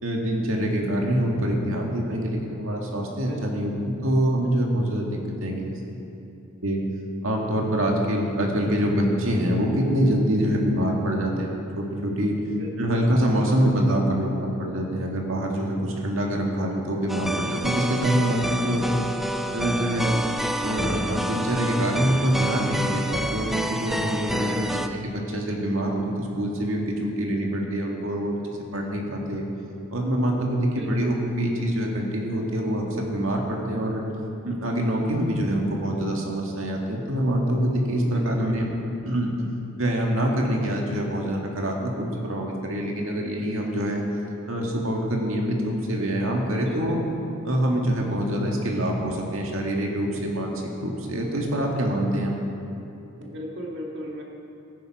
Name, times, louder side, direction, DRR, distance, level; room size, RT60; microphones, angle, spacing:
voice 1, 0.0-6.1 6.6-6.8 7.2-12.4 12.8-19.1 19.5-20.2 20.6-28.4 28.7-29.4 29.9-34.1 34.4-38.6 39.0-39.3 39.8-44.0 44.5-47.0 47.4-52.3, equal, 85° right, 0 dB, 1.9 m, -25 dB
voice 2, 3.2-3.7 12.5-12.9 24.4-24.8 30.6-31.1 38.1-38.5 46.6-47.0 53.2-54.2, equal, 60° right, 0 dB, 1.8 m, -37 dB
sound 1, 17.1-24.9, equal, ahead, 0.4 m, -28 dB
15.0 x 10.5 x 4.8 m, 2.8 s
head